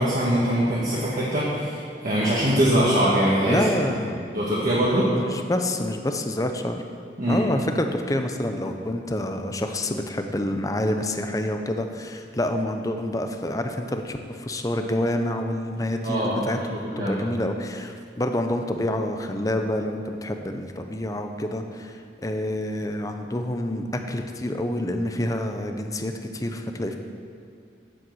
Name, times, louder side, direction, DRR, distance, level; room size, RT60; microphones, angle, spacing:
voice 1, 0.0-3.6 4.3-5.1 7.2-7.4 16.0-17.2, equal, 50° right, -8 dB, 1.8 m, -23 dB
voice 2, 3.5-4.2 5.1-6.8 7.3-16.6 17.0-27.0, left 1 dB, 20° left, 5 dB, 0.7 m, -27 dB
8.8 x 7.7 x 7.7 m, 2.3 s
head